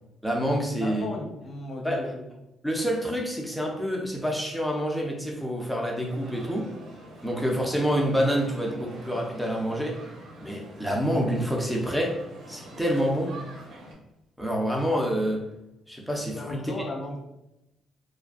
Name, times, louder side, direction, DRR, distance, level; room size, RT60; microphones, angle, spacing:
voice 1, 0.2-1.1 1.8-2.0 2.6-6.7 7.2-10.0 10.4-12.2 12.5-13.3 14.4-15.4 15.9-16.7, equal, ahead, -1 dB, 0.5 m, -27 dB
voice 2, 0.8-2.3 16.3-17.2, left 2 dB, 50° left, 1 dB, 0.4 m, -35 dB
sound 1, 6.0-13.9, right 1 dB, 90° right, 0.6 m, -45 dB
2.3 x 2.2 x 2.5 m, 0.89 s
cardioid pair, 90°, 0 cm